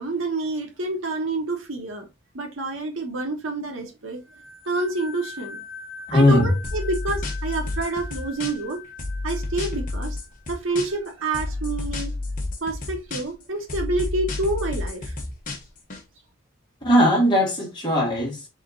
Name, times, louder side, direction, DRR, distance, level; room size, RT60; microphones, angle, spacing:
voice 1, 0.0-2.1 2.3-4.2 4.7-5.6 6.1-8.8 9.2-10.2 10.5-12.1 12.6-15.1, right 2 dB, 75° right, 1.3 m, -28 dB
sound 1, 4.3-10.7, left 4 dB, ahead, 1.1 m, -42 dB
voice 2, 6.1-6.5 16.8-18.5, left 1 dB, 20° left, 1.7 m, -19 dB
sound 2, 6.6-8.7 9.0-11.1 11.3-13.4 13.7-16.0, left 2 dB, 40° left, 1.1 m, -30 dB
3.7 x 3.5 x 3.8 m
head